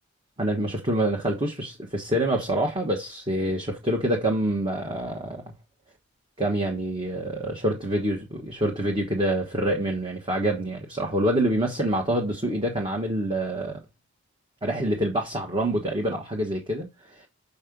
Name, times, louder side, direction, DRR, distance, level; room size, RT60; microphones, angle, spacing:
voice 1, 0.4-5.4 6.4-13.8 14.6-17.3, right 1 dB, 25° right, 1.4 m, -26 dB
6.9 x 5.5 x 5.2 m
head